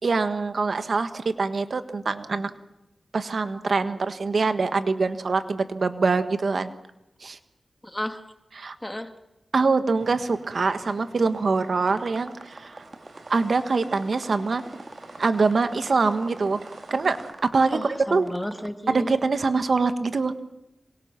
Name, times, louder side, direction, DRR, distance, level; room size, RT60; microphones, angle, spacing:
voice 1, 0.0-2.5 3.1-6.7 7.2-7.4 8.6-8.8 9.5-12.8 13.3-14.6 15.2-16.6 16.9-17.8 18.1-18.3 18.9-20.3, right 4 dB, 70° right, 10 dB, 1.5 m, -24 dB
voice 2, 7.8-8.2 8.8-9.1 17.7-19.2, left 1 dB, 15° left, 7 dB, 1.9 m, -32 dB
sound 1, 10.0-17.3, right 2 dB, 90° right, 4.6 m, -50 dB
sound 2, 11.9-18.7, right 2 dB, 40° right, 1.9 m, -44 dB
26.5 x 23.5 x 6.0 m, 0.96 s
wide cardioid pair, 65°, 0 cm